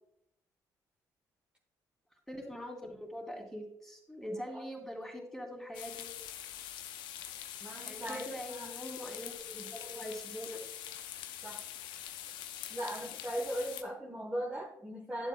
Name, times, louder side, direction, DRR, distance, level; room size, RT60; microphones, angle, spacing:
voice 1, 2.3-6.1 7.8-10.6, equal, 5° left, 0 dB, 2.9 m, -43 dB
voice 2, 4.3-4.6 7.6-8.7 11.4-11.6 12.7-15.3, equal, 15° right, 0 dB, 1.3 m, -39 dB
sound 1, 5.7-13.8, left 11 dB, 85° left, 0.6 m, -44 dB
11.5 x 7.4 x 2.3 m, 0.76 s
supercardioid pair, 60°, 8 cm